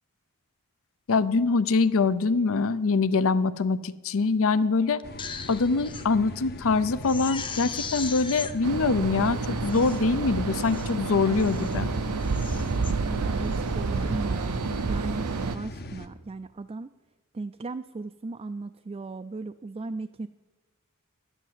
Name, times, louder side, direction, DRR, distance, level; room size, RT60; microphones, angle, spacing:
voice 1, 1.1-5.0 5.5-11.9, left 4 dB, 65° left, 16 dB, 0.6 m, -24 dB
sound 1, 5.0-16.1, left 1 dB, 45° left, 0.9 m, -40 dB
Crying sobbing, 5.0-6.1 6.5-6.6 7.0-8.5 9.2-9.3 9.6-10.0 10.5-10.9 11.4-11.8 12.2-12.9 13.4-13.7, left 5 dB, 20° left, 0.7 m, -38 dB
sound 2, 8.6-15.6, right 4 dB, 85° right, 0.6 m, -29 dB
voice 2, 13.0-16.9 17.3-20.3, right 3 dB, 25° right, 9 dB, 0.4 m, -36 dB
11.5 x 10.0 x 7.5 m, 1.2 s
head